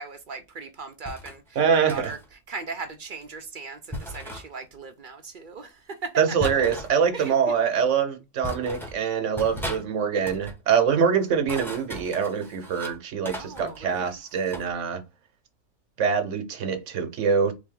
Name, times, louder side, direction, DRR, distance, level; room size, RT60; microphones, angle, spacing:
voice 1, 0.0-2.2 2.5-6.5 7.1-7.3 13.2-14.2, right 4 dB, 50° right, 0.7 m, -38 dB
sound 1, 1.0-1.4 1.9-2.3 3.9-4.4 6.4-6.9 7.8-7.9 8.4-9.0 9.4-9.8 10.1-10.6 11.3-13.0 13.2-14.7, equal, ahead, 1.1 m, -37 dB
voice 2, 1.6-2.1 6.2-15.0 16.0-17.5, right 6 dB, 70° right, 1.1 m, -24 dB
4.1 x 3.5 x 3.7 m
omnidirectional pair, 1.4 m